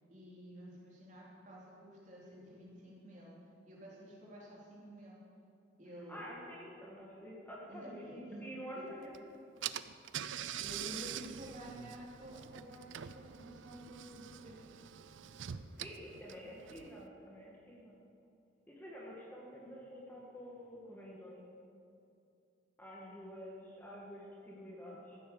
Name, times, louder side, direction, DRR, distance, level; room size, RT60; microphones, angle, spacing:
voice 1, 0.1-3.3 3.6-5.2 5.8-6.2 7.7-8.4 8.7-8.9 10.6-14.6, equal, 40° right, -4 dB, 3.3 m, -51 dB
voice 2, 6.1-9.1 15.8-18.0 18.7-21.4 22.8-25.2, equal, 10° left, -4 dB, 1.8 m, -49 dB
Car / Engine, 9.1-9.2 9.6-17.1, right 10 dB, 85° right, 0.5 m, -45 dB
14.5 x 9.2 x 7.1 m, 2.6 s
head